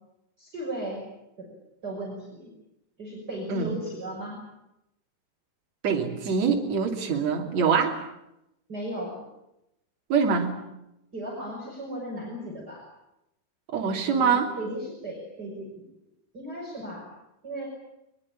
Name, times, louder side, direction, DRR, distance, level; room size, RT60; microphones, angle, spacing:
voice 1, 0.4-1.0 1.4-1.5 1.8-2.5 3.0-4.4 8.7-9.2 11.1-12.8 14.1-15.7 16.3-17.1 17.4-17.7, right 1 dB, 25° right, -1 dB, 6.4 m, -36 dB
voice 2, 5.8-8.0 10.1-10.6 13.7-14.5, right 6 dB, 45° right, 2 dB, 3.9 m, -24 dB
23.0 x 22.0 x 8.8 m, 0.85 s
omnidirectional pair, 4.7 m